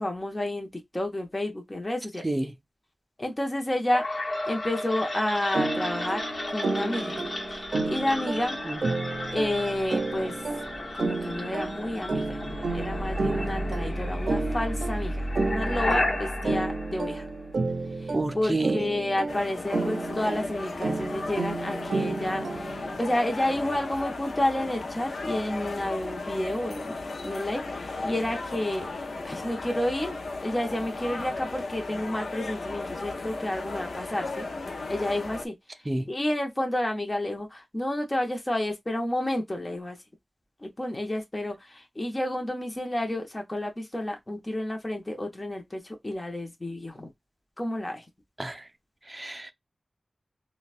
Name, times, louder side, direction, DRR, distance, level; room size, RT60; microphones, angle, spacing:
voice 1, 0.0-2.2 3.2-4.0 4.4-6.2 6.5-7.3 7.8-8.6 9.3-10.3 11.0-17.2 18.0-27.0 27.2-34.5 34.9-35.5 36.1-40.0 40.6-47.1 47.6-48.0, left 1 dB, 25° left, 0.8 m, -30 dB
sound 1, 3.9-17.8, left 1 dB, 60° left, 1.1 m, -33 dB
sound 2, 5.5-23.0, right 3 dB, 80° right, 0.5 m, -31 dB
voice 2, 18.1-18.8 35.9-36.1 48.4-48.6 49.1-49.5, right 2 dB, 25° right, 0.5 m, -29 dB
sound 3, 19.3-35.5, left 3 dB, 80° left, 0.5 m, -35 dB
3.8 x 2.3 x 2.4 m
wide cardioid pair, 65°, 0 cm